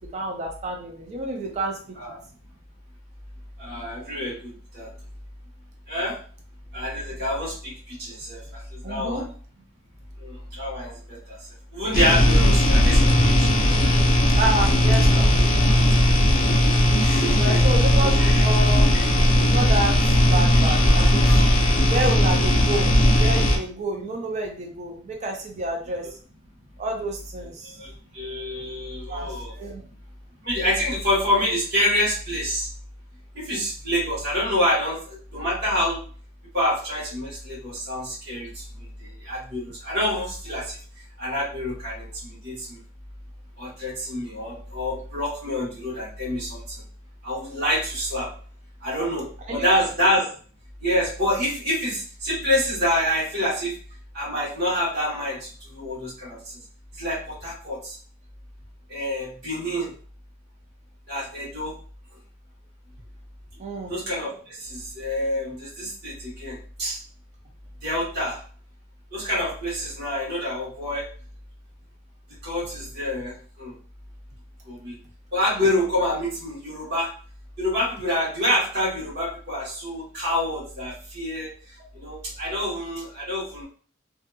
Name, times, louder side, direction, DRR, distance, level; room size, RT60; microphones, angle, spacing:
voice 1, 0.1-1.8 8.8-9.3 14.4-15.3 17.3-18.9 19.4-21.3 21.8-26.1 26.8-27.7 29.1-29.3 29.5-29.8 49.5-49.8 63.6-64.0, right 2 dB, 35° right, 1 dB, 0.4 m, -29 dB
voice 2, 3.6-4.9 5.9-6.2 6.7-9.2 10.2-13.0 13.3-13.5 17.0-17.6 18.2-18.4 27.6-29.5 30.4-32.7 33.3-36.0 36.5-40.8 41.2-42.8 43.6-46.8 47.2-48.3 48.8-50.3 50.8-53.7 54.1-56.4 56.9-58.0 58.9-59.9 61.1-61.8 63.9-67.0 67.8-68.4 69.1-71.1 72.4-73.7 74.7-75.0 75.3-77.1 77.6-81.5 81.9-83.7, left 1 dB, 55° right, -7 dB, 1.2 m, -27 dB
sound 1, 11.9-23.6, left 1 dB, 45° left, 0.5 m, -18 dB
2.6 x 2.5 x 2.3 m, 0.42 s
head